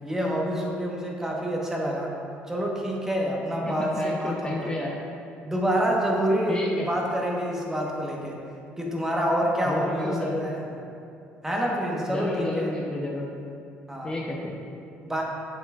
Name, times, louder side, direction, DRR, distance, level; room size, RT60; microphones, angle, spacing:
voice 1, 0.0-2.1 2.5-4.7 5.4-8.4 8.8-10.6 11.4-12.7 13.9-14.1 15.0-15.2, equal, 10° right, -2 dB, 1.2 m, -27 dB
voice 2, 3.7-4.9 6.5-6.9 9.6-10.4 12.1-13.3 14.0-14.6, left 2 dB, 20° left, -2 dB, 0.7 m, -31 dB
8.2 x 7.0 x 2.5 m, 2.5 s
cardioid pair, 105°, 4 cm